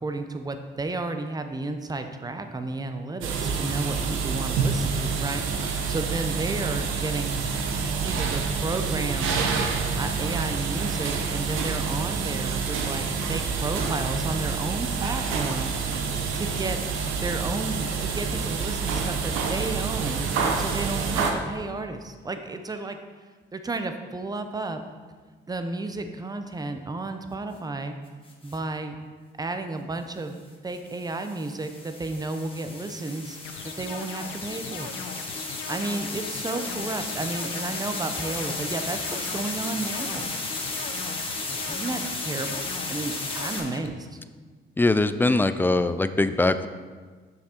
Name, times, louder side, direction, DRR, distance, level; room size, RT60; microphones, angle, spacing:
voice 1, 0.0-7.4 8.0-9.4 9.9-15.7 16.3-16.8 17.2-23.0 23.5-24.8 25.5-27.9 28.4-29.0 29.4-30.4 30.6-33.4 33.6-34.9 35.7-40.3 41.7-44.2, right 2 dB, 20° right, 7 dB, 0.7 m, -32 dB
sound 1, 3.2-21.3, right 5 dB, 90° right, 0.8 m, -27 dB
sound 2, 28.3-28.6 30.7-43.6, left 2 dB, 25° left, 1.5 m, -34 dB
sound 3, 33.4-43.9, left 7 dB, 80° left, 0.7 m, -39 dB
voice 2, 44.8-46.7, left 2 dB, 10° left, 11 dB, 0.3 m, -22 dB
6.3 x 5.9 x 4.4 m, 1.5 s
cardioid pair, 90°, 20 cm